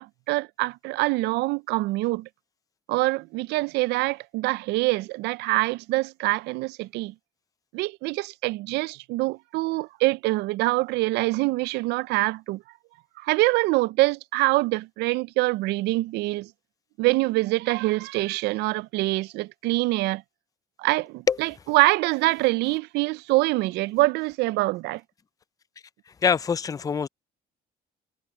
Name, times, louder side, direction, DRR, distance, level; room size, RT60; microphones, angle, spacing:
voice 1, 0.0-2.3 2.9-7.1 7.7-12.6 13.2-16.5 17.0-20.2 20.8-25.0, right 21 dB, 85° right, 0.4 m, -25 dB
voice 2, 26.2-27.1, left 6 dB, 20° left, 0.4 m, -23 dB
cardioid pair, 110°, 17 cm